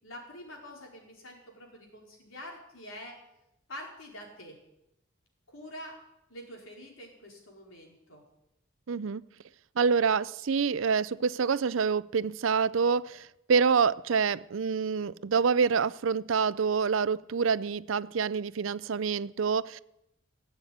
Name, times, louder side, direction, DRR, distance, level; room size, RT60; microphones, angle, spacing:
voice 1, 0.0-3.2 3.7-4.6 5.5-6.0 6.3-8.2, left 1 dB, 75° left, 4.7 m, -46 dB
voice 2, 8.9-9.2 9.8-19.8, right 5 dB, 70° right, 0.5 m, -27 dB
17.5 x 8.2 x 9.4 m
head